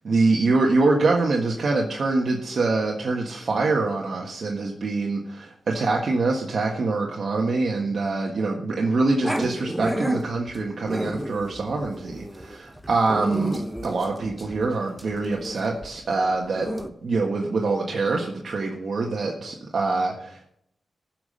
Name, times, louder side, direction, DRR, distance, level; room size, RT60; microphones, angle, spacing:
voice 1, 0.0-16.7 17.0-20.5, right 3 dB, 60° right, 0 dB, 1.6 m, -24 dB
Growling, 9.2-16.9, equal, 5° right, 1.0 m, -32 dB
15.0 x 6.0 x 6.8 m, 0.71 s
wide cardioid pair, 105°, 0 cm